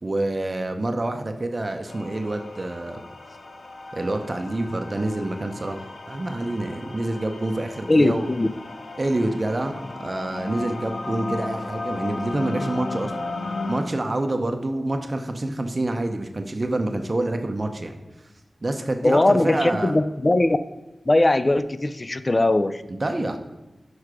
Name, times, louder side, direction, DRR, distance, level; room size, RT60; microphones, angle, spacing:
voice 1, 0.0-3.0 3.9-8.3 9.0-9.7 10.0-13.1 13.7-17.9 18.6-20.0 22.9-23.4, right 2 dB, 40° right, 5 dB, 0.6 m, -27 dB
sound 1, 1.9-13.8, left 3 dB, 65° left, 0.8 m, -35 dB
voice 2, 7.9-8.5 19.0-20.6 21.1-22.8, left 2 dB, 35° left, 12 dB, 0.4 m, -20 dB
6.5 x 4.7 x 4.9 m, 1.1 s
wide cardioid pair, 70°, 0 cm